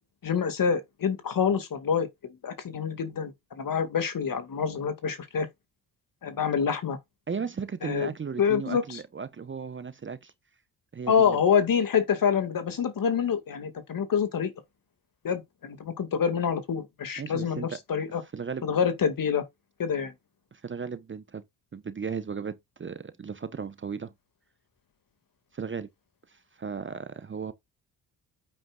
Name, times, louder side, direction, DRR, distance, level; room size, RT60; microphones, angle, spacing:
voice 1, 0.2-2.1 2.4-5.5 6.2-7.0 7.8-8.1 8.4-9.0 11.1-14.5 15.2-18.2 18.6-19.4 19.8-20.1, left 7 dB, 45° left, 2.1 m, -26 dB
voice 2, 7.3-10.3 10.9-11.4 17.2-17.8 18.2-18.6 20.5-21.4 21.7-24.1 25.5-25.9 26.3-27.5, right 6 dB, 25° right, 0.9 m, -36 dB
9.0 x 8.9 x 2.4 m
hypercardioid pair, 50°, 45 cm